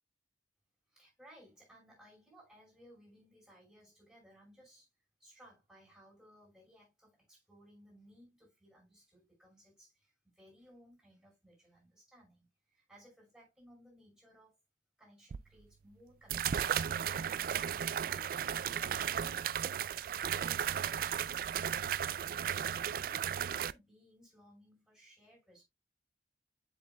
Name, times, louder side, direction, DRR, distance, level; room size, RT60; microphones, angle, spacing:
voice 1, 0.9-4.9 5.2-14.6 15.0-17.4 18.0-18.4 18.8-21.5 21.9-25.6, equal, 5° right, 5.6 m, -61 dB
sound 1, 15.3-15.4 16.3-23.7, right 9 dB, 50° right, 0.3 m, -35 dB
7.9 x 7.4 x 2.2 m
head